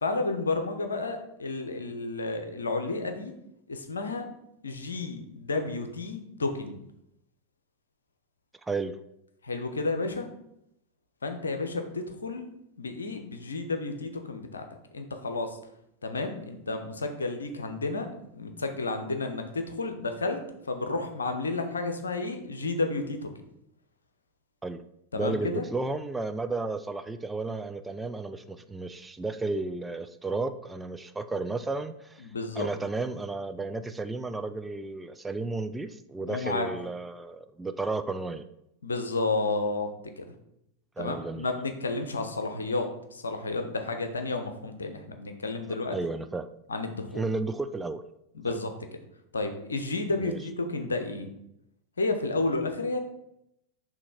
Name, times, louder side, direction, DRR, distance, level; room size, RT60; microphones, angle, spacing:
voice 1, 0.0-3.3 3.7-4.3 4.6-6.8 9.4-10.3 11.2-12.5 12.8-14.6 14.9-15.6 16.0-18.1 18.3-20.4 20.7-23.3 25.1-25.6 32.2-32.7 36.2-36.7 38.8-40.2 41.0-46.0 46.7-47.2 48.3-48.7 49.3-51.3 52.0-53.0, left 3 dB, 75° left, 6 dB, 0.8 m, -31 dB
voice 2, 8.6-9.0 24.6-24.8 25.1-32.3 32.6-38.4 41.0-41.5 45.9-46.5 47.1-48.0 48.5-48.6 50.2-50.4, right 3 dB, 10° right, 9 dB, 0.3 m, -33 dB
6.2 x 2.9 x 5.7 m, 0.80 s
figure-of-eight pair, 90°, 0 cm